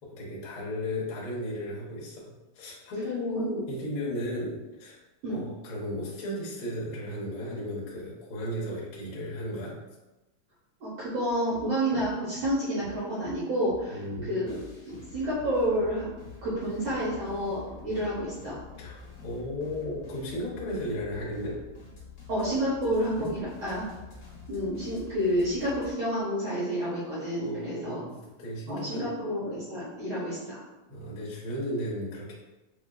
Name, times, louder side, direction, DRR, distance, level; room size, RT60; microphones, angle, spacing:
voice 1, 0.0-5.0 5.3-9.7 13.9-14.5 18.8-19.0 19.2-21.6 27.4-29.1 30.9-32.3, left 1 dB, 90° left, -5 dB, 1.1 m, -35 dB
voice 2, 10.8-14.6 14.9-16.1 16.4-18.6 22.3-23.9 24.5-28.0 28.7-30.6, equal, 75° right, -9 dB, 1.4 m, -29 dB
sound 1, 11.3-25.9, left 4 dB, 50° left, 1.8 m, -47 dB
5.8 x 2.4 x 2.2 m, 1.1 s
omnidirectional pair, 3.8 m